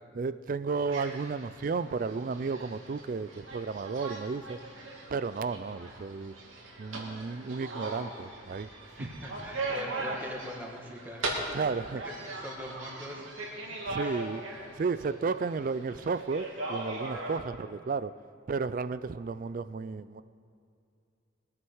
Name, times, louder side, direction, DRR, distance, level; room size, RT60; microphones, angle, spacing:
voice 1, 0.1-4.6 5.1-6.3 6.8-8.7 9.0-9.1 11.5-12.0 13.9-14.4 14.8-18.1 18.5-20.2, right 4 dB, 40° right, 14 dB, 0.3 m, -33 dB
sound 1, 0.9-17.4, right 2 dB, 85° right, 2.7 m, -40 dB
voice 2, 9.0-11.8 12.0-12.1 12.4-13.2 14.0-14.2, equal, 10° right, -1 dB, 1.6 m, -42 dB
22.0 x 9.7 x 4.7 m, 2.5 s
head